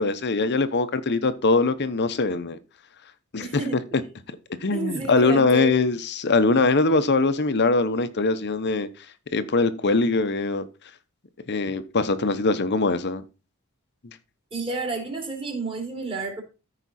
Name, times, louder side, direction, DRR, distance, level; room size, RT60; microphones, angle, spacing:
voice 1, 0.0-2.6 3.3-3.5 3.9-4.0 4.6-8.9 9.3-10.6 11.5-13.2, left 3 dB, 50° left, 0.8 m, -22 dB
voice 2, 3.4-3.8 4.7-5.7 14.5-16.4, right 2 dB, 25° right, 3.1 m, -30 dB
14.0 x 5.0 x 4.2 m
head